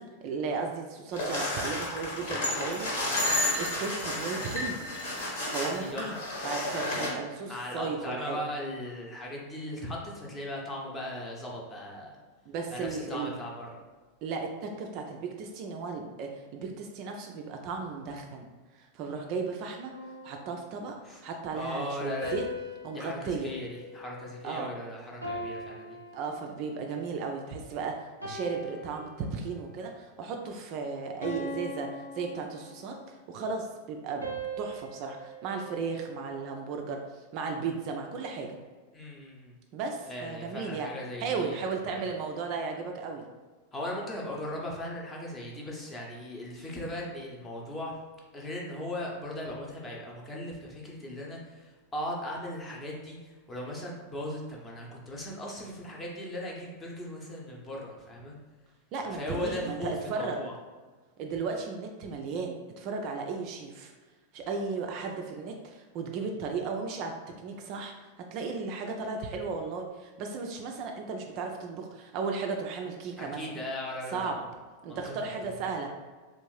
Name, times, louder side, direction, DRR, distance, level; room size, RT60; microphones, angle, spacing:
voice 1, 0.0-2.9 3.6-4.8 5.5-6.2 6.4-8.4 12.5-13.3 14.2-18.5 18.7-19.9 20.2-22.4 22.8-23.5 24.4-24.7 26.1-34.3 34.6-38.5 39.7-40.9 41.2-43.2 48.7-48.8 58.9-60.4 61.2-63.9 64.3-67.1 67.4-73.4 74.1-74.4 74.8-75.9, right 4 dB, 40° right, 2 dB, 0.3 m, -35 dB
sound 1, 1.1-7.1, left 1 dB, 55° left, 1.1 m, -31 dB
voice 2, 5.8-6.1 7.4-12.1 12.7-13.8 21.0-21.2 21.5-22.4 22.9-26.0 38.9-39.5 40.1-42.0 43.7-47.9 48.3-58.4 59.0-60.5 73.2-74.3 74.9-75.3, left 1 dB, 20° left, -2 dB, 0.8 m, -38 dB
sound 2, 19.9-21.2 22.2-24.7 25.2-26.9 27.5-27.7 28.2-29.8 30.2-30.5 31.2-33.1 34.2-36.6, equal, 85° left, 0.7 m, -42 dB
3.4 x 2.4 x 3.1 m, 1.4 s
figure-of-eight pair, 90°, 0 cm